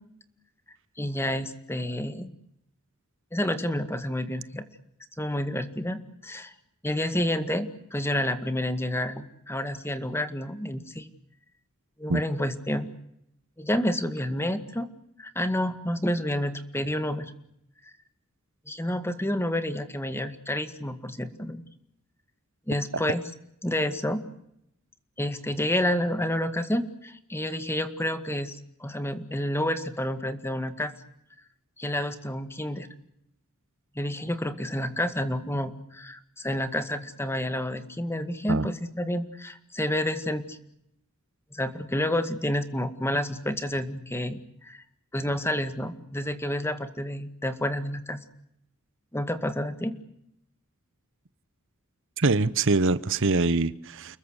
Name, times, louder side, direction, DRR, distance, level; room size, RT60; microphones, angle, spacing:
voice 1, 1.0-2.3 3.3-4.6 5.2-6.5 6.8-11.1 12.0-12.9 13.6-14.9 15.2-17.3 18.7-21.6 22.7-23.2 23.6-24.2 25.2-30.9 31.8-32.9 34.0-40.6 41.5-44.8 45.1-48.2 49.1-50.0, left 1 dB, 10° left, 2.1 m, -29 dB
voice 2, 52.2-54.2, right 3 dB, 60° right, 1.0 m, -24 dB
30.0 x 21.0 x 8.2 m
head